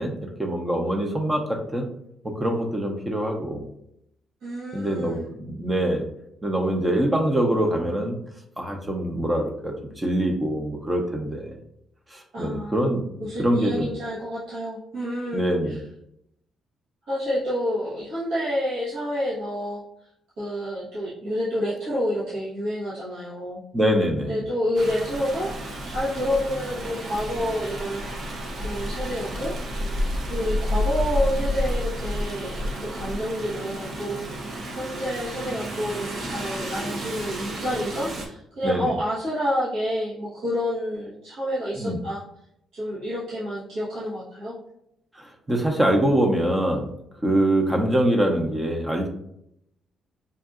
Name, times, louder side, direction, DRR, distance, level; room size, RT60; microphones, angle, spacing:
voice 1, 0.0-1.9 2.2-3.7 4.7-6.0 6.4-8.2 8.6-11.6 12.1-13.0 13.4-13.9 15.3-15.8 23.7-24.4 38.6-38.9 41.8-42.0 45.2-46.9 47.2-49.1, right 1 dB, 15° right, 3 dB, 0.7 m, -24 dB
voice 2, 4.4-5.3 12.3-12.9 13.2-15.8 17.1-19.8 20.4-23.6 24.2-25.5 25.8-28.4 28.6-29.5 30.3-34.5 34.7-42.2 42.7-44.6, equal, 75° right, -11 dB, 1.2 m, -29 dB
Rain, 24.8-38.3, equal, 60° right, 0.7 m, -30 dB
5.4 x 2.6 x 2.4 m, 0.77 s
cardioid pair, 90°, 0 cm